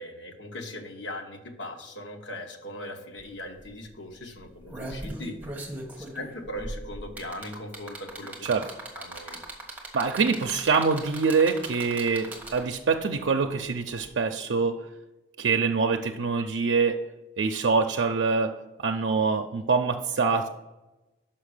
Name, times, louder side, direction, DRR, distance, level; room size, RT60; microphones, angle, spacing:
voice 1, 0.0-5.4 6.0-8.4 8.9-9.4, left 1 dB, 85° left, 4 dB, 1.2 m, -39 dB
sound 1, 3.2-3.3 3.6-3.8 4.4-12.8 14.0-14.1, right 1 dB, 10° right, 1.2 m, -39 dB
voice 2, 9.9-14.9 15.4-17.0 17.4-18.5 18.8-20.5, right 4 dB, 85° right, 5 dB, 0.5 m, -25 dB
5.9 x 5.8 x 6.5 m, 1.0 s
head